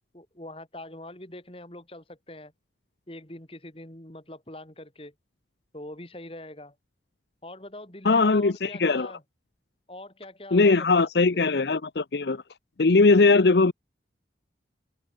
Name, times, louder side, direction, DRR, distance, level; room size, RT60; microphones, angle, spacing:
voice 1, 0.1-2.5 3.1-5.1 5.7-6.7 7.4-9.2 9.9-11.7, left 1 dB, 30° left, 3.6 m, -43 dB
voice 2, 8.0-9.1 10.5-12.4 12.8-13.7, left 3 dB, 65° left, 0.7 m, -20 dB
head